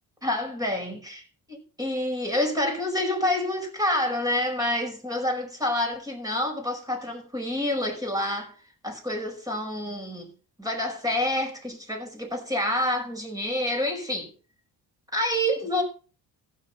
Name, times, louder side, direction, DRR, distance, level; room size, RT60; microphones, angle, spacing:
voice 1, 0.2-1.2 1.5-8.6 8.8-10.3 10.6-14.3 15.1-15.8, left 1 dB, 10° right, 5.3 m, -28 dB
15.5 x 6.9 x 5.5 m
cardioid pair, 120°, 39 cm